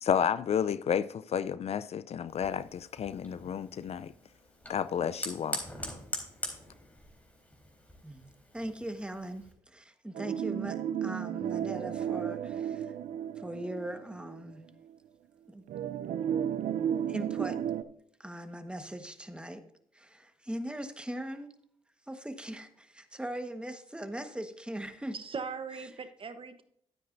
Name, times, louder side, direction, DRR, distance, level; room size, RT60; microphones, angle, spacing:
voice 1, 0.0-4.1 4.7-5.6, left 8 dB, 55° left, 0.5 m, -31 dB
Fire, 2.3-9.5, left 1 dB, 10° left, 3.8 m, -43 dB
voice 2, 8.0-12.9 13.4-14.6 15.5-15.6 17.1-17.6 18.2-19.6 19.9-21.5 22.1-25.2, right 1 dB, 10° right, 1.3 m, -40 dB
sound 1, 10.1-14.5 14.9-15.0 15.7-17.8, right 9 dB, 75° right, 0.5 m, -33 dB
voice 3, 25.1-26.6, right 5 dB, 45° right, 1.0 m, -39 dB
12.0 x 9.4 x 2.6 m
supercardioid pair, 60°, 13 cm